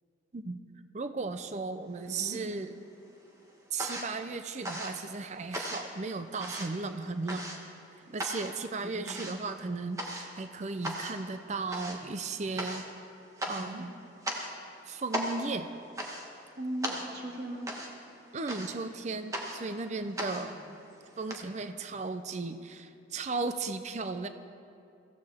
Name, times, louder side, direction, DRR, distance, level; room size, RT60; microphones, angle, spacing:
voice 1, 0.9-2.7 3.7-7.4 8.1-12.9 13.5-13.9 14.8-15.7 18.3-20.5 21.2-24.3, right 3 dB, 35° right, 9 dB, 0.5 m, -35 dB
sound 1, 2.0-2.8 3.1-21.4, equal, 15° right, 1.4 m, -39 dB
voice 2, 2.1-2.4 8.1-8.2 8.8-9.1 13.6-13.8 16.6-17.7 20.0-20.6, right 1 dB, 55° right, -1 dB, 2.0 m, -40 dB
23.5 x 15.0 x 3.5 m, 2.5 s
head